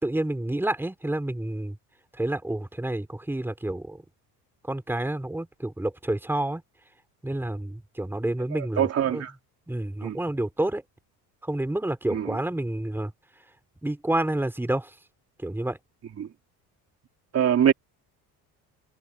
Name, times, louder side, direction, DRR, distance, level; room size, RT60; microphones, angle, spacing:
voice 1, 0.0-1.8 2.2-4.0 4.6-6.6 7.2-9.2 9.7-10.8 11.4-13.1 13.8-14.9 15.4-15.8, right 1 dB, 5° right, 3.5 m, -29 dB
voice 2, 8.5-9.3 10.0-10.2 12.1-12.4 16.2-16.3 17.3-17.7, right 9 dB, 40° right, 3.0 m, -23 dB
cardioid pair, 105°, 38 cm